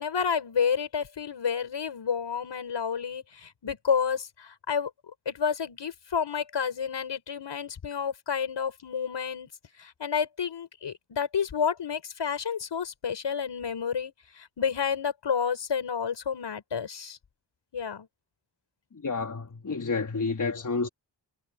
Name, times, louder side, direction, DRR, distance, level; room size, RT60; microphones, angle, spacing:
voice 1, 0.0-4.9 5.2-9.5 9.8-17.2 17.7-18.1, left 7 dB, 75° left, 6.6 m, -30 dB
voice 2, 19.0-20.9, left 4 dB, 45° left, 4.1 m, -29 dB
wide cardioid pair, 125°, 43 cm